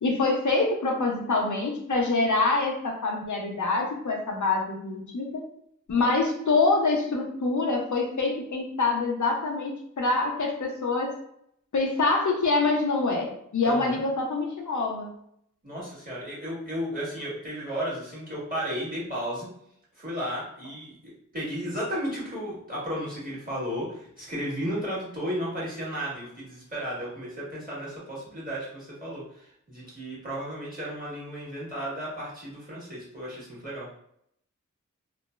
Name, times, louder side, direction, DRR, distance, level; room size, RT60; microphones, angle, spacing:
voice 1, 0.0-5.4 5.9-11.2 11.7-15.1, left 3 dB, 70° left, 0 dB, 0.5 m, -25 dB
voice 2, 13.6-14.0 15.6-19.5 20.0-33.9, equal, 25° right, -8 dB, 1.4 m, -34 dB
3.0 x 2.0 x 2.2 m, 0.72 s
wide cardioid pair, 45°, 31 cm